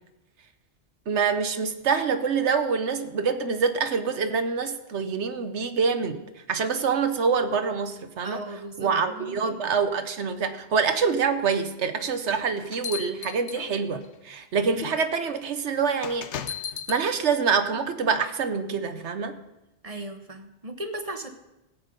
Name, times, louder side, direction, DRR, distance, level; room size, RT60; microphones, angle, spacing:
voice 1, 1.1-6.2 6.5-8.4 8.8-16.3 16.9-19.4, right 5 dB, 85° right, 9 dB, 1.2 m, -26 dB
voice 2, 8.2-9.6 19.8-21.3, right 1 dB, 35° right, 7 dB, 1.1 m, -37 dB
sound 1, 12.3-14.1 14.8-15.0 16.0-17.0, left 9 dB, 90° left, 1.1 m, -35 dB
16.5 x 8.4 x 5.2 m, 0.95 s
omnidirectional pair, 1.2 m